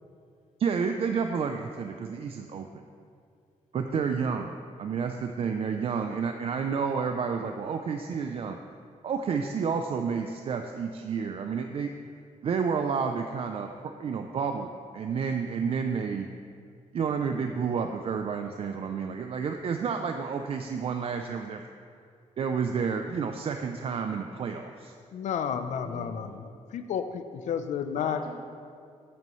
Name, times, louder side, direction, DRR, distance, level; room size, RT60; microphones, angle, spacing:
voice 1, 0.6-2.8 3.7-8.6 9.0-11.9 12.4-13.7 14.0-16.3 16.9-21.6 22.4-24.9, right 6 dB, 50° right, 5 dB, 0.5 m, -30 dB
voice 2, 25.1-26.4 26.7-28.2, left 8 dB, 65° left, 9 dB, 0.6 m, -31 dB
voice 3, 25.7-26.4 27.9-28.3, right 1 dB, 30° right, -2 dB, 1.7 m, -44 dB
13.0 x 9.5 x 3.1 m, 2.4 s
cardioid pair, 140°, 13 cm